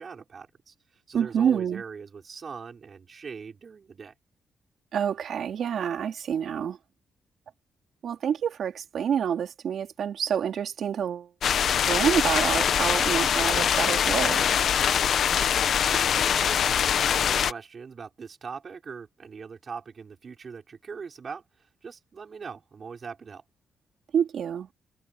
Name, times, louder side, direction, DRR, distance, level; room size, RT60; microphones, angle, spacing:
voice 1, 0.0-4.1 15.9-16.7 17.0-23.4, right 5 dB, 45° right, 6.1 m, -41 dB
voice 2, 1.1-1.8 4.9-6.8 8.0-11.3 11.9-14.4 24.1-24.7, right 8 dB, 70° right, 3.3 m, -27 dB
sound 1, 11.4-17.5, left 8 dB, 65° left, 1.1 m, -23 dB
cardioid pair, 105°, 0 cm